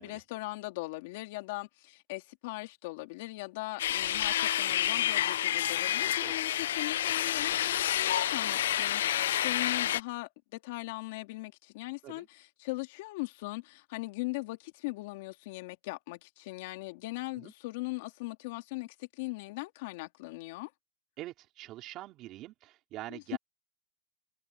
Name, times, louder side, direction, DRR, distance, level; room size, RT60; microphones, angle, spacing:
voice 1, 0.0-12.2 12.6-20.7 23.1-23.4, left 22 dB, 55° left, 2.9 m, -40 dB
sound 1, 3.8-10.0, left 12 dB, 80° left, 0.6 m, -29 dB
voice 2, 6.0-6.4 12.0-12.3 17.3-17.5 21.2-23.4, right 16 dB, 35° right, 4.2 m, -45 dB
supercardioid pair, 155°, 0 cm